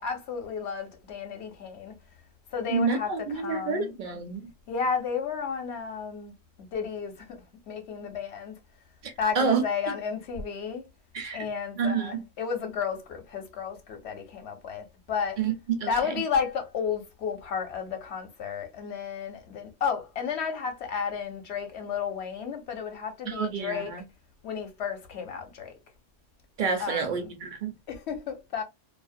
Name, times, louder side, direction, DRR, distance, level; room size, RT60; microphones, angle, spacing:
voice 1, 0.0-2.0 2.5-3.9 4.7-6.3 6.6-8.6 9.2-10.9 11.3-15.4 15.9-24.0 24.4-25.8 26.8-27.3 27.9-28.6, left 6 dB, 65° left, 0.9 m, -32 dB
voice 2, 2.7-4.4 9.0-9.6 11.1-11.4 11.8-12.2 15.4-15.9 23.3-24.0 26.6-27.7, right 5 dB, 55° right, 0.6 m, -28 dB
2.5 x 2.1 x 2.5 m
omnidirectional pair, 1.3 m